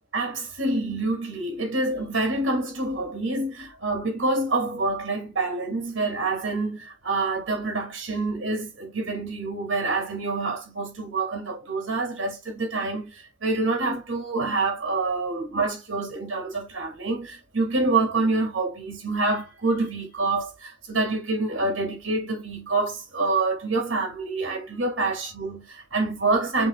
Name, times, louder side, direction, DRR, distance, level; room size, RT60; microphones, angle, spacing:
voice 1, 0.1-26.7, right 3 dB, 70° right, 2.4 m, -27 dB
7.1 x 3.1 x 2.3 m
head